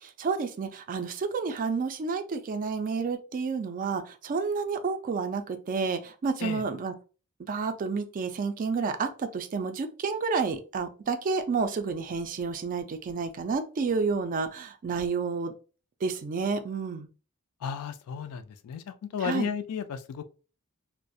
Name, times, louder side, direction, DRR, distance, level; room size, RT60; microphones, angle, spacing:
voice 1, 0.0-6.9 7.4-15.5 16.0-17.1 19.2-19.5, right 5 dB, 35° right, 0.3 m, -30 dB
voice 2, 17.6-20.2, left 7 dB, 75° left, 0.3 m, -34 dB
2.3 x 2.1 x 2.6 m
head